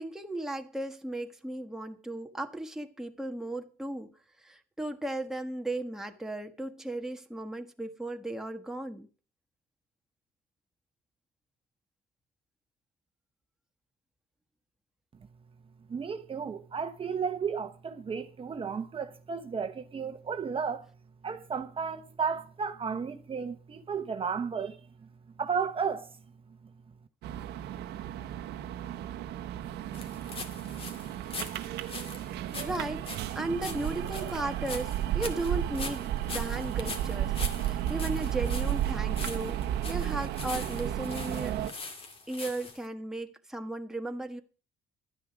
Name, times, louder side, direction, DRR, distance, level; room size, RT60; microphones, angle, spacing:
voice 1, 0.0-9.1 32.6-33.0 33.3-41.6 42.3-44.4, right 2 dB, 5° right, 1.4 m, -36 dB
voice 2, 15.9-20.8 21.2-24.8 25.4-26.1, right 6 dB, 35° right, 1.1 m, -33 dB
sound 1, 27.2-41.7, right 12 dB, 80° right, 1.0 m, -33 dB
sound 2, 29.9-42.9, left 3 dB, 35° left, 2.3 m, -42 dB
12.5 x 9.8 x 6.0 m
cardioid pair, 110°, 17 cm